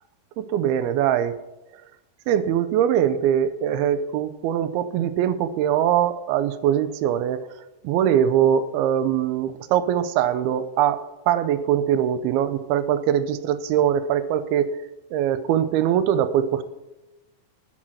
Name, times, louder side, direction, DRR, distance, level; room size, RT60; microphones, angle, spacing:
voice 1, 0.4-1.3 2.3-7.4 7.8-11.0 11.3-14.7 15.1-16.6, right 10 dB, 85° right, 12 dB, 2.6 m, -22 dB
10.0 x 8.2 x 6.4 m, 0.99 s
omnidirectional pair, 4.4 m